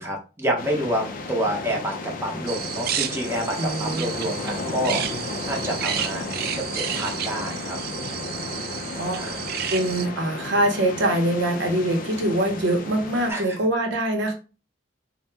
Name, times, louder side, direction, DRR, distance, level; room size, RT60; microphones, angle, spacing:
voice 1, 0.0-7.8 9.2-9.6 13.3-13.6, right 1 dB, 15° right, 0.7 m, -28 dB
sound 1, 0.6-13.3, left 3 dB, 45° left, 0.4 m, -34 dB
sound 2, 2.5-10.1, right 9 dB, 55° right, 0.3 m, -31 dB
voice 2, 3.6-4.1 8.9-9.4 9.7-14.3, right 1 dB, 80° right, 0.7 m, -24 dB
2.7 x 2.0 x 3.2 m
head